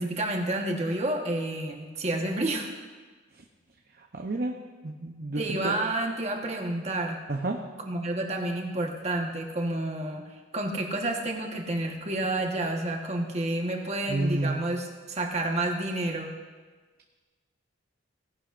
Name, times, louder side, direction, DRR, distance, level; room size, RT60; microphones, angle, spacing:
voice 1, 0.0-2.7 5.3-7.2 7.8-10.2 10.5-16.3, right 1 dB, 35° right, 1 dB, 1.3 m, -29 dB
voice 2, 4.1-4.5 4.8-5.8 7.3-7.6 14.1-14.6, right 2 dB, 50° right, 2 dB, 0.7 m, -30 dB
18.0 x 11.0 x 2.6 m, 1.4 s
head